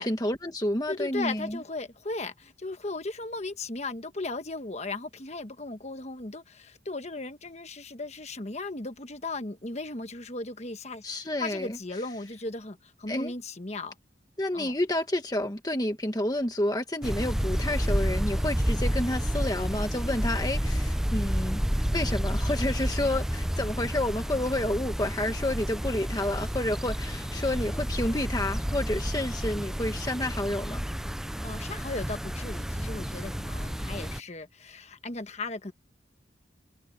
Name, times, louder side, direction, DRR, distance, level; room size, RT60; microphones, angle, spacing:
voice 1, 0.0-1.6 11.0-11.8 13.1-13.3 14.4-21.6 21.9-30.9, left 1 dB, 20° left, 1.4 m, -30 dB
voice 2, 0.9-11.1 11.4-13.9 14.5-14.7 31.4-35.7, left 2 dB, 35° left, 1.2 m, -36 dB
sound 1, 17.0-34.2, equal, ahead, 0.4 m, -30 dB
head